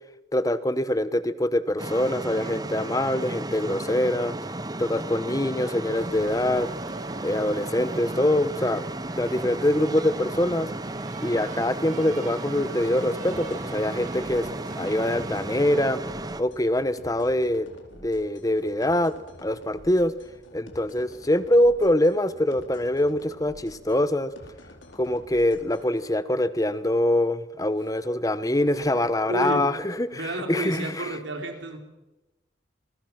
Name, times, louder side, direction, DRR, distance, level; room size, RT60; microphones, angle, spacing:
voice 1, 0.3-4.3 4.8-6.7 7.2-8.8 9.1-10.7 11.2-14.5 14.7-16.0 16.4-17.7 18.0-20.1 20.5-24.3 25.0-30.2 30.5-31.1, left 1 dB, 20° left, 14 dB, 1.0 m, -24 dB
sound 1, 1.8-16.4, right 2 dB, 20° right, 0.8 m, -34 dB
sound 2, 5.9-15.5, right 3 dB, 45° right, 1.1 m, -43 dB
sound 3, 13.3-26.2, left 1 dB, 85° left, 4.3 m, -49 dB
voice 2, 28.8-29.7 30.1-31.8, right 1 dB, 80° right, 4 dB, 4.0 m, -31 dB
28.0 x 21.5 x 6.0 m, 1.0 s
head